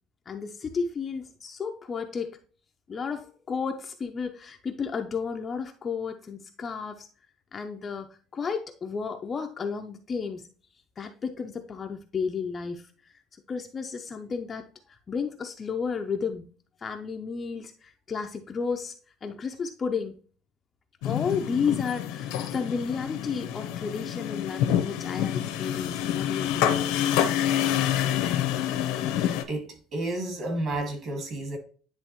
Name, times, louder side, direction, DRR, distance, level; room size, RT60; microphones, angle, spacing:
voice 1, 0.3-2.4 2.9-7.1 7.5-10.5 11.0-12.8 13.5-14.6 14.9-16.5 16.8-18.9 19.2-20.2 21.0-26.8, left 5 dB, 20° left, 0.5 m, -32 dB
sound 1, 21.0-29.4, left 10 dB, 85° left, 0.8 m, -27 dB
voice 2, 29.5-31.6, right 2 dB, 35° right, 1.8 m, -31 dB
10.0 x 3.4 x 2.9 m
cardioid pair, 175°, 0 cm